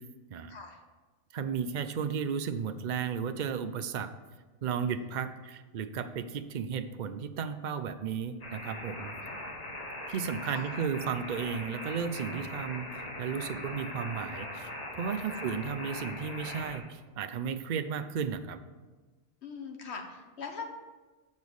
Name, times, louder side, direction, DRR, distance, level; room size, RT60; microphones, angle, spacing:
voice 1, 0.5-0.8 4.7-5.1 9.2-9.3 10.4-10.7 15.2-15.7 19.4-20.6, left 4 dB, 65° left, 3 dB, 1.3 m, -43 dB
voice 2, 1.3-4.1 4.6-9.1 10.1-18.6, right 7 dB, 55° right, 10 dB, 0.5 m, -34 dB
sound 1, 8.4-16.8, left 1 dB, 35° left, 1.1 m, -41 dB
7.1 x 5.3 x 6.2 m, 1.3 s
omnidirectional pair, 1.2 m